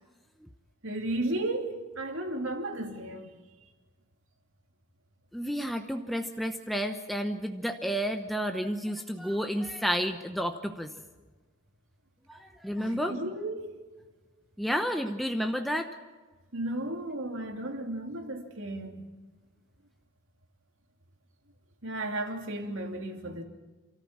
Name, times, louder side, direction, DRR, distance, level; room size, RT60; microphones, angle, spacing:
voice 1, 0.8-3.3 12.8-13.7 16.5-19.1 21.8-23.4, right 1 dB, 65° right, 2.9 m, -34 dB
voice 2, 5.3-10.9 12.3-13.2 14.6-15.9, equal, ahead, 0.9 m, -31 dB
29.0 x 14.0 x 7.4 m
head